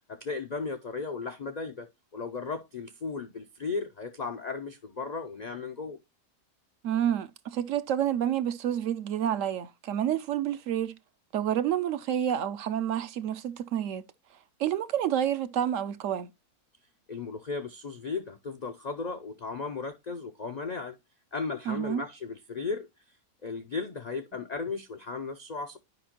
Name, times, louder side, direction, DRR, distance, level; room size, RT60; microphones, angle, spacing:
voice 1, 0.1-6.0 17.1-21.0 21.3-22.9 23.4-25.8, left 4 dB, 65° left, 0.4 m, -35 dB
voice 2, 6.8-11.0 11.3-14.0 14.6-16.3 21.7-22.0, right 10 dB, 70° right, 0.8 m, -29 dB
10.5 x 5.1 x 2.9 m
omnidirectional pair, 1.5 m